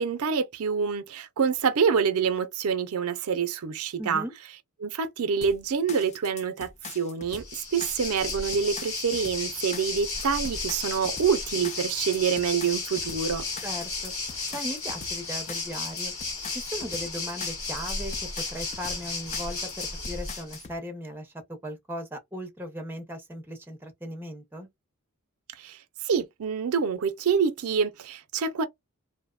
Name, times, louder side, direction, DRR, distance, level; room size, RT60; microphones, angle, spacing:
voice 1, 0.0-4.2 4.8-13.4 25.6-25.8 26.0-28.7, right 6 dB, 85° right, 0.5 m, -26 dB
voice 2, 4.0-4.3 13.6-14.1 14.5-16.1 16.5-21.3 21.6-24.7, equal, 10° right, 0.6 m, -37 dB
sound 1, 5.4-20.8, left 5 dB, 30° left, 0.4 m, -43 dB
Waves surf, 7.3-20.6, left 3 dB, 70° left, 1.1 m, -34 dB
2.7 x 2.0 x 2.3 m
head